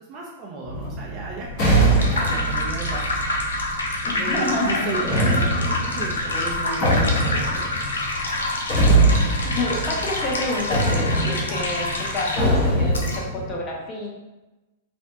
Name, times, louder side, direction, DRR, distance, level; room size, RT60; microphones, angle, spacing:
voice 1, 0.1-3.4 3.7-7.6, right 3 dB, 40° right, -3 dB, 0.5 m, -35 dB
sound 1, 0.6-4.0 5.0-10.4 10.7-13.5, right 1 dB, 45° left, 1.1 m, -23 dB
sound 2, 1.5-13.2, left 2 dB, 85° left, 0.5 m, -27 dB
voice 2, 4.0-5.5 7.2-7.3 8.8-14.1, left 2 dB, 25° left, -3 dB, 0.8 m, -29 dB
3.3 x 2.1 x 2.7 m, 1.1 s
hypercardioid pair, 110°, 0 cm